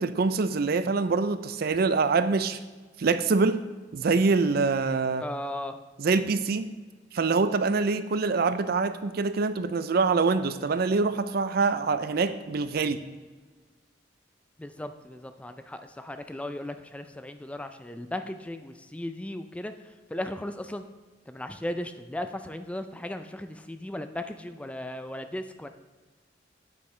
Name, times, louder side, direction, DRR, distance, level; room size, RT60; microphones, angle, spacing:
voice 1, 0.0-2.6 3.0-3.6 3.9-5.3 6.0-6.7 7.1-13.0, right 4 dB, 55° right, 12 dB, 0.5 m, -25 dB
voice 2, 5.2-5.8 14.6-20.8 21.3-25.7, left 1 dB, 5° left, 9 dB, 0.4 m, -36 dB
8.5 x 8.1 x 3.2 m, 1.3 s
head